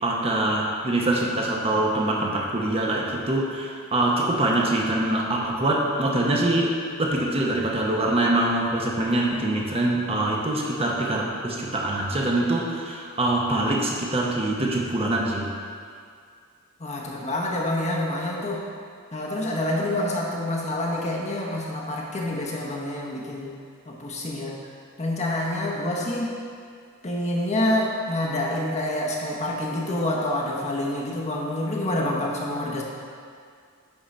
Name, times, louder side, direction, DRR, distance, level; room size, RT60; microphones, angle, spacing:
voice 1, 0.0-15.5, right 1 dB, 25° right, -2 dB, 0.8 m, -24 dB
voice 2, 16.8-18.6 19.1-23.6 23.9-24.6 25.0-26.4 27.0-32.8, left 1 dB, 30° left, -2 dB, 0.9 m, -27 dB
10.5 x 3.8 x 4.3 m, 2.2 s
head